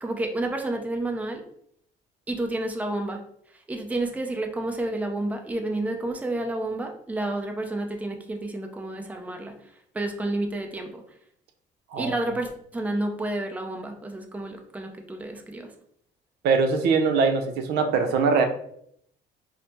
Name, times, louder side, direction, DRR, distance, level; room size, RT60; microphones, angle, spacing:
voice 1, 0.0-1.4 2.3-3.2 3.7-9.5 9.9-11.0 12.0-15.7, right 2 dB, 10° right, 3 dB, 0.5 m, -30 dB
voice 2, 16.4-18.5, right 5 dB, 80° right, 6 dB, 0.6 m, -22 dB
4.8 x 2.1 x 2.9 m, 0.68 s
cardioid pair, 110°, 17 cm